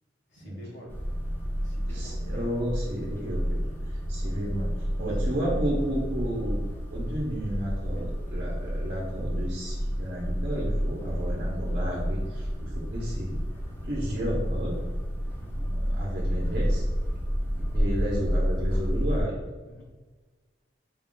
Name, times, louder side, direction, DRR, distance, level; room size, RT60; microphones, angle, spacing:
voice 1, 0.3-1.0 1.6-2.2 4.1-4.3 5.2-5.4 15.4-15.7 17.4-17.7 19.6-19.8, equal, 80° left, -2 dB, 1.1 m, -48 dB
sound 1, 0.9-19.2, equal, 10° left, 0.6 m, -30 dB
voice 2, 1.9-3.6 3.9-6.6 6.9-13.3 13.8-14.8 15.7-16.8 17.7-19.4, equal, 50° right, -4 dB, 0.8 m, -32 dB
4.5 x 2.4 x 3.6 m, 1.3 s
head